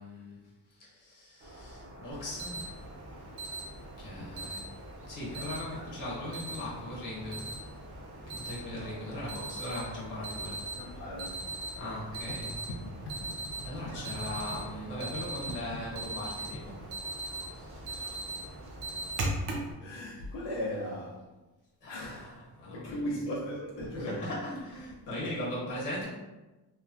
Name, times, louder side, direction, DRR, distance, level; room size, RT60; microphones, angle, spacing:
voice 1, 0.0-2.8 4.0-4.6 5.1-7.5 8.3-10.7 11.7-12.5 13.6-16.9 17.5-17.9 18.7-19.1 21.8-23.2 23.8-26.1, left 1 dB, 50° left, -5 dB, 1.1 m, -39 dB
sound 1, 1.4-19.1, right 1 dB, 35° right, 0.4 m, -49 dB
Alarm, 2.1-19.7, right 2 dB, 70° right, 0.7 m, -40 dB
voice 2, 4.2-4.5 10.8-11.5 13.1-13.2 13.8-13.9 17.9-18.2 19.8-21.2 21.9-22.3 22.7-24.2, equal, 80° left, -3 dB, 0.6 m, -37 dB
3.1 x 2.2 x 2.4 m, 1.1 s
wide cardioid pair, 175°, 41 cm